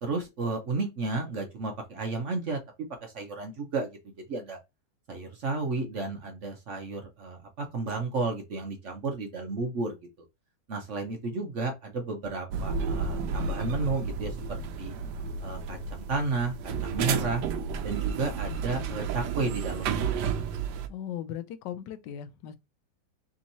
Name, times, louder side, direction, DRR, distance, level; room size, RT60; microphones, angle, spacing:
voice 1, 0.0-2.6 3.0-4.6 5.1-10.0 10.7-14.9 15.4-17.4 17.8-20.2, right 3 dB, 55° right, 0.9 m, -32 dB
sound 1, 12.5-20.9, right 5 dB, 75° right, 1.2 m, -32 dB
voice 2, 20.9-22.6, left 10 dB, 80° left, 1.2 m, -38 dB
3.6 x 2.9 x 3.9 m
omnidirectional pair, 1.9 m